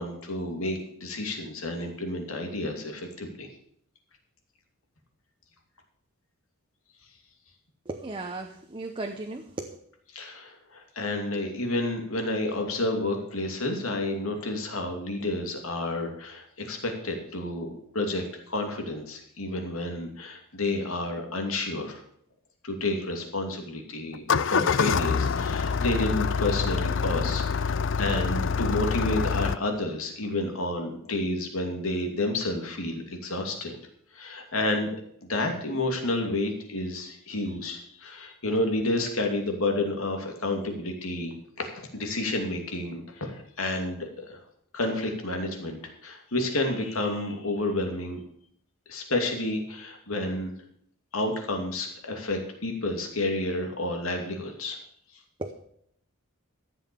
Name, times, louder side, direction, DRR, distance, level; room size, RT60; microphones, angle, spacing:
voice 1, 0.0-3.5 10.1-22.0 22.6-33.8 34.1-44.4 44.7-48.2 48.9-50.5 51.1-54.8, left 2 dB, 75° left, 3 dB, 2.7 m, -30 dB
voice 2, 7.9-9.8 55.4-55.5, right 2 dB, 25° right, 3 dB, 0.9 m, -35 dB
Engine starting, 24.1-29.6, left 5 dB, 60° left, 0.5 m, -26 dB
13.5 x 7.9 x 6.9 m, 0.68 s
head